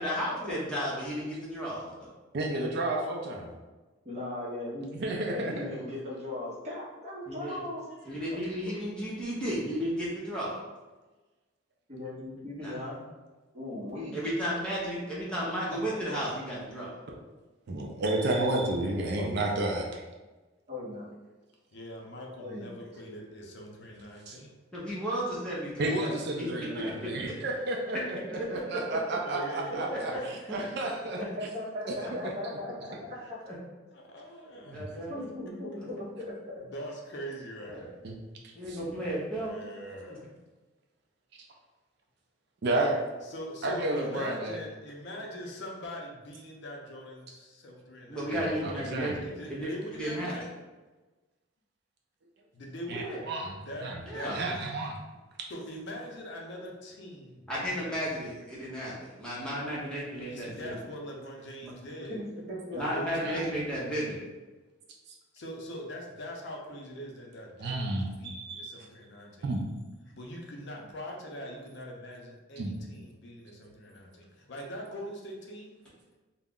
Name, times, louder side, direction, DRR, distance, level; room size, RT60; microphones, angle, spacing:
voice 1, 0.0-2.1 7.3-7.6 8.1-10.6 12.6-12.7 14.1-17.0 24.7-26.1 26.4-27.1 28.3-28.8 29.1-29.2 30.5-30.6 33.5-33.6 34.5-35.3 37.7-37.9 38.5-39.6 48.1-50.3 52.9-53.2 54.1-54.4 57.5-60.8 62.7-64.2, equal, 5° left, -7 dB, 0.7 m, -34 dB
voice 2, 2.3-3.5 4.9-5.7 17.7-20.0 24.3-24.4 25.8-30.1 30.5-31.2 32.1-32.3 32.9-33.0 34.7-34.9 38.0-38.2 38.7-38.8 42.6-43.0 43.6-44.6 48.3-49.2 52.9-53.6 53.8-54.0 54.3-55.0 63.2-63.4 67.6-68.7 69.4-69.6 72.6-72.7, right 2 dB, 55° right, 0 dB, 0.4 m, -31 dB
voice 3, 4.0-4.9 5.3-7.8 8.7-8.8 11.9-13.0 13.5-14.2 19.2-19.5 20.7-21.0 22.4-22.7 31.2-32.7 35.1-36.6 62.1-62.8 63.1-63.6, left 1 dB, 35° right, -6 dB, 0.8 m, -38 dB
voice 4, 21.7-24.5 29.2-30.9 33.1-33.3 33.9-34.8 36.7-37.8 39.4-40.3 43.2-48.5 49.1-50.4 52.5-53.1 53.7-54.6 55.5-58.1 60.3-62.2 62.7-63.5 65.3-69.5 70.1-75.8, equal, 55° left, 0 dB, 0.5 m, -42 dB
2.3 x 2.0 x 3.6 m, 1.2 s
head